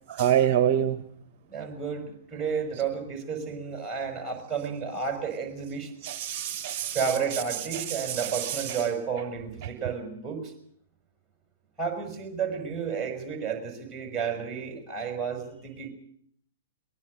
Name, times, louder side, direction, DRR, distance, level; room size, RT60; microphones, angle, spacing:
voice 1, 0.1-1.0 6.0-8.9 9.6-9.7, right 10 dB, 40° right, 1.1 m, -27 dB
voice 2, 1.5-5.9 6.9-10.5 11.8-15.9, right 6 dB, 5° right, 5.7 m, -32 dB
23.0 x 20.5 x 6.6 m
figure-of-eight pair, 110°, 0 cm